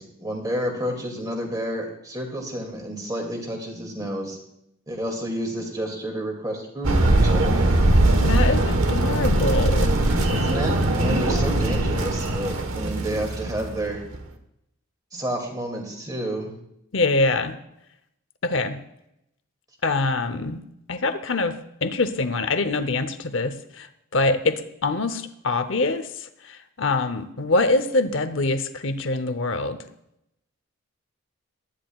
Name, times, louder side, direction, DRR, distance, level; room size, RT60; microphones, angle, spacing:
voice 1, 0.0-4.4 4.9-7.7 10.3-14.0 15.1-16.5, right 1 dB, 20° right, 2 dB, 2.3 m, -30 dB
sound 1, 6.8-14.2, right 1 dB, 70° right, 1.3 m, -21 dB
voice 2, 8.2-9.9 16.9-17.6 18.4-18.8 19.8-20.6 20.9-23.9 24.1-29.8, left 3 dB, 60° left, 10 dB, 0.8 m, -24 dB
18.0 x 12.5 x 2.4 m, 0.79 s
head